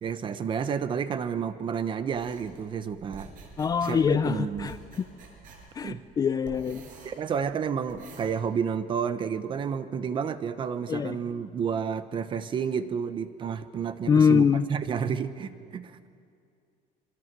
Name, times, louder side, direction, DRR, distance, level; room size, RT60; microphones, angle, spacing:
voice 1, 0.0-3.3 3.8-4.7 5.8-6.0 7.0-15.9, right 7 dB, 30° right, 12 dB, 0.9 m, -30 dB
sound 1, 2.1-8.3, right 5 dB, 55° right, 5.8 m, -48 dB
voice 2, 3.6-4.8 5.8-6.8 10.9-11.2 14.1-14.6, left 6 dB, 25° left, 13 dB, 0.5 m, -23 dB
27.5 x 23.5 x 6.1 m, 2.4 s
cardioid pair, 165°, 16 cm